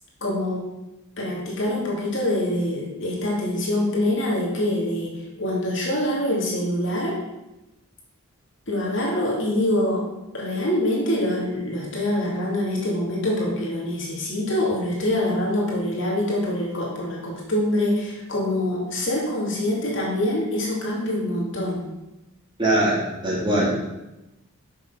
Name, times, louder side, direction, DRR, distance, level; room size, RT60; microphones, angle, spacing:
voice 1, 0.2-0.7 1.2-7.2 8.7-10.1 10.3-21.9, left 1 dB, 55° left, -4 dB, 2.5 m, -25 dB
voice 2, 22.6-23.7, right 1 dB, 20° right, -5 dB, 2.4 m, -21 dB
6.8 x 6.2 x 5.8 m, 0.97 s
head